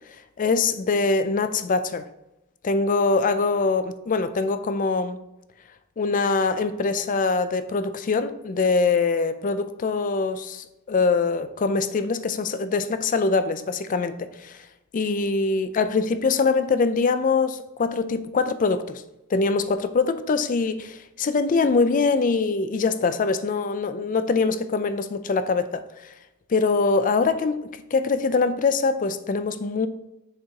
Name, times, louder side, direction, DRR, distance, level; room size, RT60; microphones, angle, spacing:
voice 1, 0.4-2.1 2.6-5.2 6.0-14.6 14.9-19.0 19.3-26.1 26.5-27.6 27.9-29.9, left 4 dB, 40° left, 11 dB, 0.4 m, -23 dB
6.5 x 4.5 x 3.7 m, 0.93 s
head